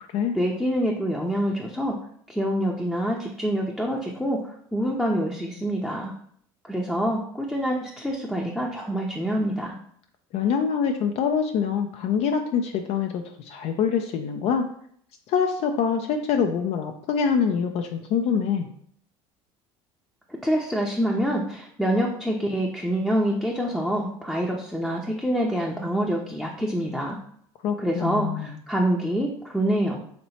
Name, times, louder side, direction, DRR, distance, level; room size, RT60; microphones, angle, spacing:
voice 1, 0.3-1.9 2.3-4.4 4.7-6.1 6.6-9.7 20.4-27.2 27.8-30.0, equal, 5° left, -3 dB, 0.6 m, -26 dB
voice 2, 10.3-14.6 15.3-18.7 27.6-28.6, left 6 dB, 60° left, 5 dB, 0.4 m, -25 dB
3.0 x 2.9 x 4.2 m, 0.63 s
supercardioid pair, 85°, 12 cm